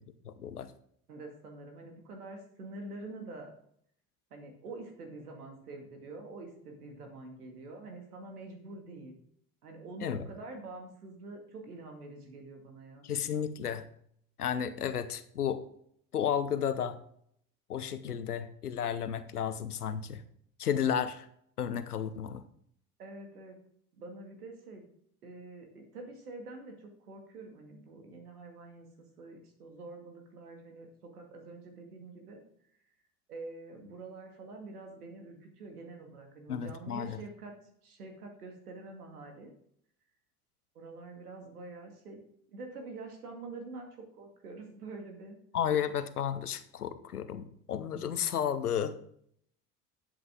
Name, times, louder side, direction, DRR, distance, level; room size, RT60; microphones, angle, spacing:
voice 1, 0.2-0.7 10.0-10.3 13.0-13.8 14.4-15.6 16.1-17.0 17.7-20.2 20.6-21.3 21.6-22.4 36.5-37.2 45.5-48.9, left 8 dB, 90° left, 12 dB, 0.9 m, -32 dB
voice 2, 1.1-3.5 4.3-9.2 9.6-13.1 23.0-23.6 23.9-24.8 25.2-28.9 29.2-32.4 33.3-37.6 37.8-39.5 40.7-42.2 42.5-43.9 44.2-45.4, right 3 dB, 85° right, 3 dB, 2.3 m, -46 dB
11.5 x 8.0 x 3.7 m, 0.67 s
hypercardioid pair, 65°, 44 cm